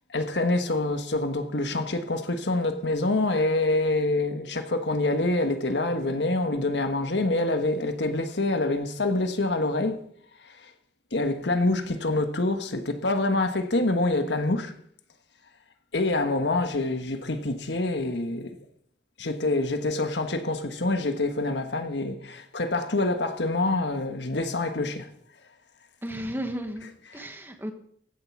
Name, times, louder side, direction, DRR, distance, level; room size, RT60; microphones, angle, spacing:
voice 1, 0.1-10.0 10.5-10.7 11.1-14.7 15.9-18.5 19.2-25.1 27.1-27.3, left 2 dB, 70° left, 1.3 m, -26 dB
voice 2, 26.0-27.7, equal, 10° right, 1.2 m, -34 dB
15.5 x 7.6 x 6.1 m
head